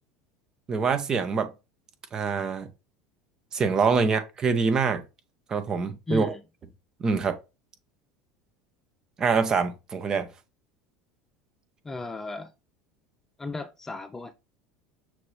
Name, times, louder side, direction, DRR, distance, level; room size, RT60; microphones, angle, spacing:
voice 1, 0.7-1.5 2.1-2.7 3.5-5.0 5.5-6.3 7.0-7.4 9.2-10.3, right 5 dB, 30° right, 0.8 m, -25 dB
voice 2, 6.1-6.4 11.8-12.5 13.4-14.3, left 3 dB, 20° left, 0.4 m, -35 dB
5.9 x 2.8 x 3.1 m
figure-of-eight pair, 75°, 2 cm